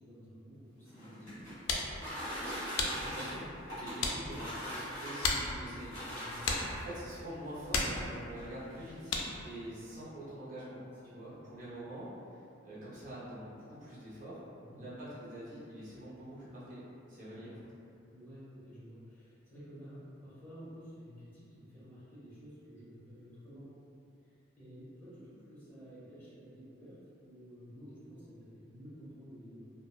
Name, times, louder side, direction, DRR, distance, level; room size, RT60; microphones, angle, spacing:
voice 1, 0.0-1.4 6.2-6.8 11.0-11.3 14.5-14.8 17.3-17.5 18.1-23.7 24.6-27.0 27.2-29.7, equal, 10° left, -11 dB, 0.7 m, -52 dB
sound 1, 0.8-7.0 7.9-8.0 8.4-8.5 8.8-9.2, equal, 30° left, 1.3 m, -41 dB
sound 2, 1.3-9.5, left 3 dB, 90° left, 0.3 m, -38 dB
voice 2, 3.0-6.1 6.8-9.1 9.4-10.8 11.1-12.1 12.6-14.4 14.8-16.8 17.1-17.5, right 1 dB, 45° right, -9 dB, 0.6 m, -45 dB
2.9 x 2.0 x 2.3 m, 2.5 s
head